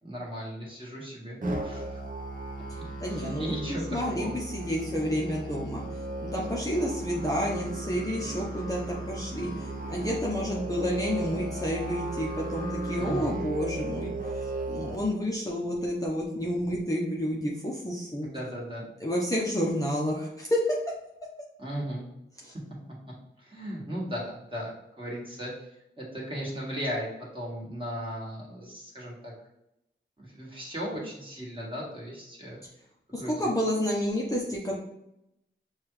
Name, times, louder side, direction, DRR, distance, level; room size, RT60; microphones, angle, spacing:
voice 1, 0.0-2.0 2.8-4.3 13.0-13.4 18.2-18.8 21.6-22.1 23.4-24.7 25.0-25.5 26.0-29.3 30.2-32.6 33.2-33.5, equal, 25° right, -4 dB, 1.6 m, -36 dB
Musical instrument, 1.4-14.9, right 2 dB, 40° right, 0.8 m, -36 dB
voice 2, 3.0-5.8 6.2-14.1 14.7-18.3 19.0-20.6 22.4-22.5 33.1-34.8, equal, 15° left, -4 dB, 0.7 m, -30 dB
6.6 x 2.4 x 3.1 m, 0.83 s
wide cardioid pair, 105°, 21 cm